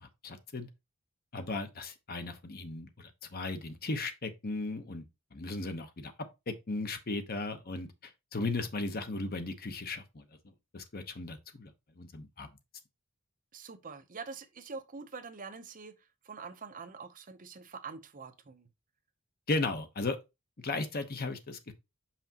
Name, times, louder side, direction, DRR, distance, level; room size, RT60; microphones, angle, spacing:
voice 1, 0.0-0.7 1.3-5.0 5.3-6.1 6.5-10.2 10.7-11.7 12.0-12.5 19.5-20.2 20.6-21.7, left 2 dB, 45° left, 0.9 m, -36 dB
voice 2, 13.5-16.0 16.2-18.7, right 4 dB, 40° right, 0.7 m, -45 dB
5.8 x 5.7 x 2.8 m
head